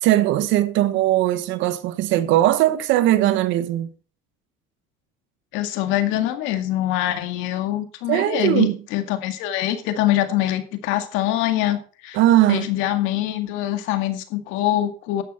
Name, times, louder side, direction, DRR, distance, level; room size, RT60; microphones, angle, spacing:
voice 1, 0.0-3.9 8.1-8.8 12.1-12.7, right 14 dB, 70° right, 1.3 m, -19 dB
voice 2, 5.5-12.2 12.5-15.2, left 13 dB, 75° left, 2.0 m, -24 dB
12.0 x 8.6 x 4.3 m
supercardioid pair, 105°, 21 cm